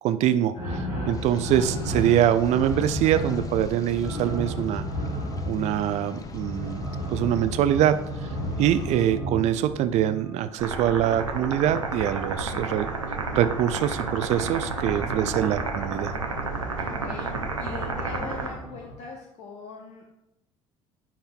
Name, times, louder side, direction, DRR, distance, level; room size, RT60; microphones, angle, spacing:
voice 1, 0.0-4.8 5.5-6.8 7.1-8.3 8.6-12.9 13.3-16.2, right 11 dB, 45° right, 12 dB, 0.5 m, -24 dB
sound 1, 0.5-10.5 12.1-18.9, right 1 dB, 85° left, 1.9 m, -35 dB
sound 2, 1.1-9.1, left 5 dB, 20° left, 0.6 m, -39 dB
sound 3, 10.6-18.5, right 3 dB, 80° right, 0.8 m, -31 dB
voice 2, 16.5-20.1, left 5 dB, 50° left, 1 dB, 0.9 m, -41 dB
10.0 x 5.7 x 2.3 m, 0.85 s
figure-of-eight pair, 60°, 16 cm